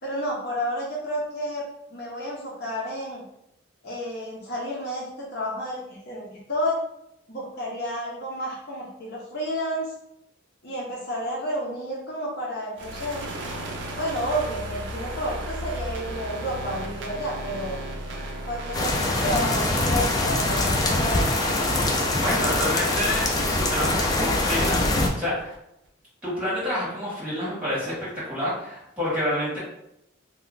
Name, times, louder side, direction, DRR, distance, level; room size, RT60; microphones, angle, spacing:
voice 1, 0.0-3.2 3.8-6.8 7.3-9.9 10.6-13.2 13.9-17.8 18.5-21.4, equal, 50° left, -3 dB, 0.7 m, -31 dB
sound 1, 12.8-25.6, right 1 dB, 60° right, 0.5 m, -36 dB
sound 2, 18.7-25.1, left 2 dB, 20° left, 0.3 m, -23 dB
voice 2, 22.2-25.5 26.2-29.6, equal, 5° right, -9 dB, 1.5 m, -28 dB
2.8 x 2.2 x 3.8 m, 0.81 s
head